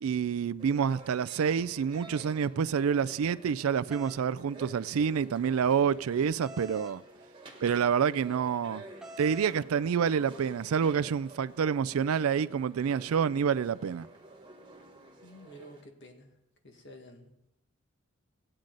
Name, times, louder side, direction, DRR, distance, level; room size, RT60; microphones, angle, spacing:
voice 1, 0.0-7.0 7.6-8.8 9.2-14.1, right 7 dB, 85° right, 0.4 m, -28 dB
sound 1, 0.6-15.8, right 1 dB, 20° right, 1.5 m, -50 dB
sound 2, 3.9-4.2 6.4-7.0 9.0-9.6, equal, ahead, 0.8 m, -45 dB
voice 2, 15.2-16.4 16.6-17.5, equal, 55° left, 1.8 m, -51 dB
16.0 x 8.9 x 3.9 m
head